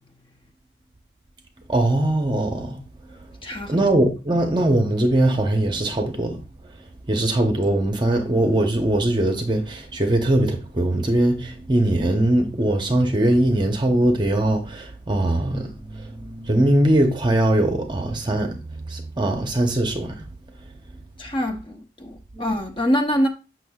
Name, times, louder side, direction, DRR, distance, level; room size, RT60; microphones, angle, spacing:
voice 1, 1.7-2.8 3.7-6.4 7.1-20.2 22.3-22.5, right 1 dB, 25° right, 0.8 m, -21 dB
voice 2, 3.4-3.9 21.2-23.3, equal, 30° left, 0.8 m, -25 dB
6.9 x 6.3 x 2.3 m
head